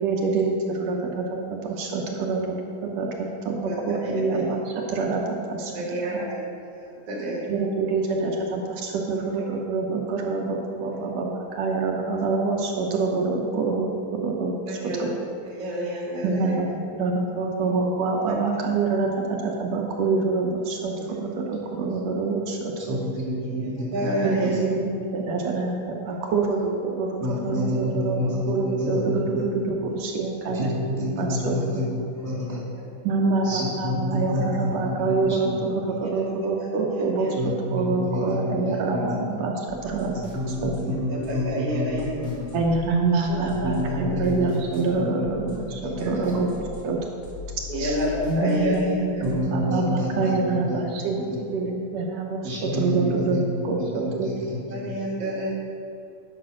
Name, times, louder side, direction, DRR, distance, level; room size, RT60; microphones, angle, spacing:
voice 1, 0.0-5.7 6.1-6.3 7.5-15.1 16.2-16.7 17.0-23.0 24.2-31.8 33.0-40.2 40.5-40.7 42.5-46.5 46.8-47.0 47.8-48.0 48.3-54.3, right 3 dB, 70° right, 0 dB, 1.9 m, -26 dB
voice 2, 3.6-4.4 5.7-7.5 14.7-15.1 15.5-16.6 23.4-24.6 32.1-32.9 36.0-37.3 40.9-42.3 43.3-44.2 46.0-46.1 47.7-49.3 52.8-53.3 54.7-55.5, equal, 90° right, -3 dB, 3.3 m, -30 dB
voice 3, 22.9-24.1 24.4-24.6 27.2-29.4 30.5-31.8 32.2-32.6 33.4-35.5 37.4-39.2 40.2-42.4 43.6-44.6 45.2-45.3 45.7-45.9 46.3-46.4 49.2-50.8 51.2-51.4 52.4-53.4 53.8-54.9, left 1 dB, 10° left, -5 dB, 1.3 m, -29 dB
sound 1, 39.7-49.4, left 4 dB, 50° left, 1.2 m, -41 dB
10.5 x 5.3 x 6.3 m, 2.5 s
omnidirectional pair, 3.3 m